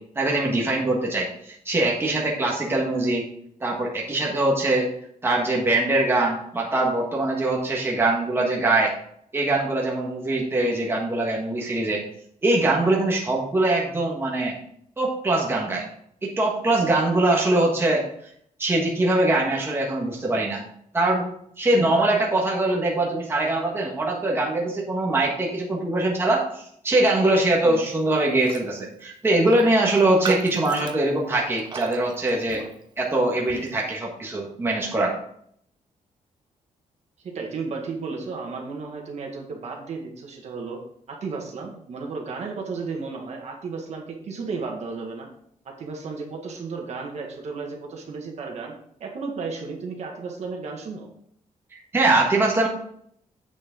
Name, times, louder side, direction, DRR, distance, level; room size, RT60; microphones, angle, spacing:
voice 1, 0.1-3.2 3.6-4.9 5.2-8.9 9.3-12.0 12.4-14.6 15.0-15.9 16.2-18.0 18.6-20.6 20.9-21.2 21.6-32.6 33.0-35.1 51.7-52.7, right 2 dB, 20° right, -2 dB, 1.5 m, -22 dB
Raindrop, 28.4-28.7 29.0-29.1 29.5-33.0 33.5-33.7, right 6 dB, 35° right, 0.6 m, -35 dB
voice 2, 37.2-40.8 41.1-45.3 45.6-48.7 49.0-51.1, right 4 dB, 55° right, 1 dB, 1.8 m, -33 dB
8.5 x 6.4 x 3.8 m, 0.68 s
wide cardioid pair, 170°, 13 cm